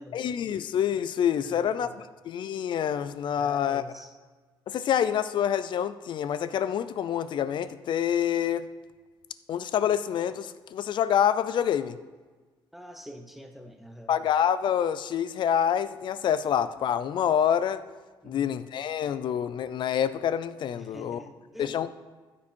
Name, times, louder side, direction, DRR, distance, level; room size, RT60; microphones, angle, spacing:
voice 1, 0.1-1.9 2.2-3.8 4.7-8.7 9.5-12.0 14.1-17.8 18.2-21.2 21.6-21.9, left 9 dB, 60° left, 0.5 m, -27 dB
voice 2, 1.4-2.1 3.4-4.1 12.7-14.2 18.2-18.6 20.7-21.8, equal, ahead, 1.0 m, -45 dB
14.0 x 6.0 x 4.5 m
cardioid pair, 115°, 9 cm